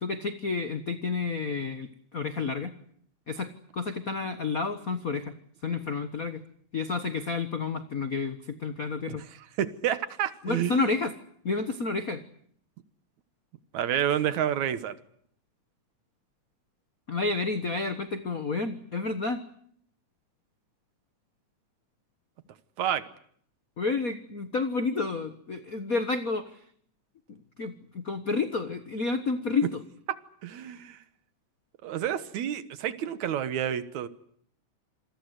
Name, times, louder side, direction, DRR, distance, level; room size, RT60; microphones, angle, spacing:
voice 1, 0.0-2.7 3.3-5.3 5.6-6.4 6.7-9.2 10.4-11.1 11.4-12.2 17.1-19.4 23.8-26.6 27.3-29.8, left 4 dB, 55° left, 0.9 m, -30 dB
voice 2, 9.6-10.8 13.7-15.0 22.8-23.0 30.4-31.0 31.8-34.1, right 10 dB, 70° right, 2.5 m, -29 dB
27.5 x 21.5 x 8.2 m
omnidirectional pair, 3.6 m